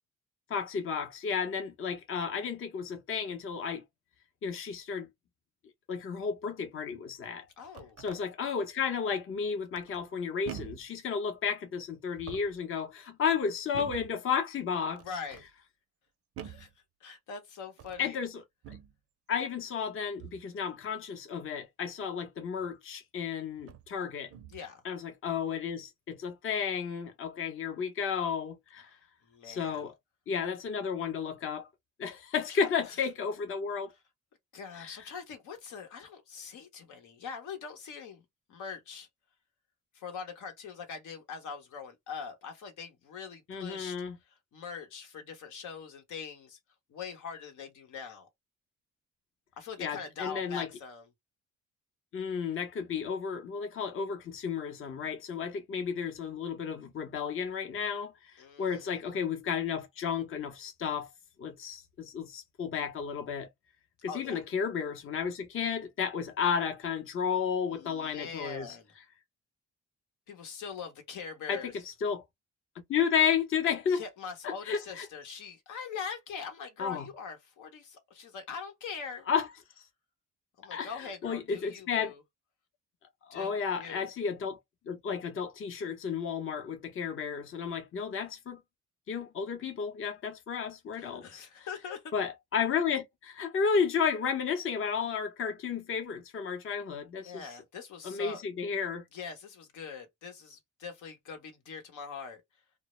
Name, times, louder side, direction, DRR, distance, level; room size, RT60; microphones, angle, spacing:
voice 1, 0.5-3.8 4.4-5.1 5.9-7.5 8.0-15.0 18.0-18.4 18.7-18.8 19.3-24.3 24.8-28.9 29.4-29.9 30.3-31.7 32.0-33.9 34.7-35.1 43.5-44.2 49.8-50.7 52.1-61.1 61.4-63.5 64.0-68.8 71.5-72.2 72.9-74.0 74.4-75.1 76.8-77.1 79.3-79.5 80.7-82.1 83.3-84.6 84.9-88.6 89.1-91.7 92.1-97.6 98.0-99.0, left 6 dB, 45° left, 0.7 m, -32 dB
sound 1, 7.4-8.2 9.7-10.1 10.4-10.9 12.1-12.7 13.7-14.2 15.0-15.5 16.4-16.7 17.7-18.1 18.6-19.0 20.2-20.5 22.6-22.7 23.6-23.9 24.3-24.7, right 9 dB, 50° right, 0.5 m, -46 dB
voice 2, 7.6-8.0 15.0-15.5 16.4-16.7 17.0-18.2 24.5-24.8 28.8-29.0 29.2-29.8 32.5-33.0 34.5-38.2 38.5-39.1 39.9-44.0 44.3-46.6 46.9-48.3 49.6-51.1 58.4-58.9 64.1-64.4 67.7-68.9 70.3-71.7 74.0-79.3 80.6-82.2 83.3-84.1 90.9-92.1 97.2-98.4 99.1-102.4, left 6 dB, 80° left, 0.9 m, -43 dB
2.1 x 2.0 x 2.9 m
cardioid pair, 90°, 30 cm